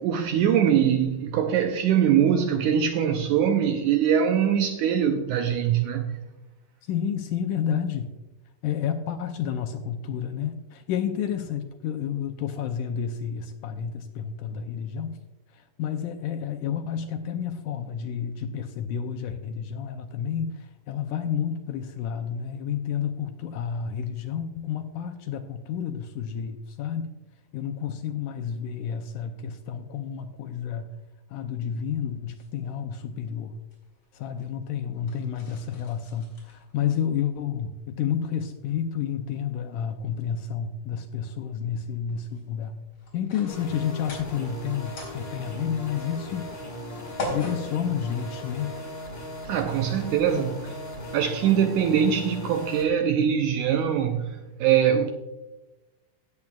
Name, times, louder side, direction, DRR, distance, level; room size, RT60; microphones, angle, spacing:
voice 1, 0.0-6.2 49.5-50.6 51.1-55.1, right 8 dB, 80° right, 1.8 m, -22 dB
voice 2, 6.9-8.1 8.6-15.2 15.8-27.2 27.5-31.0 31.3-33.5 34.1-42.7 43.1-46.5 47.3-48.8 50.3-50.5, left 8 dB, 80° left, 2.0 m, -30 dB
sound 1, 31.7-48.8, left 2 dB, 50° left, 4.7 m, -44 dB
sound 2, 43.5-52.8, left 1 dB, 25° left, 1.3 m, -38 dB
17.5 x 8.2 x 2.3 m
omnidirectional pair, 4.1 m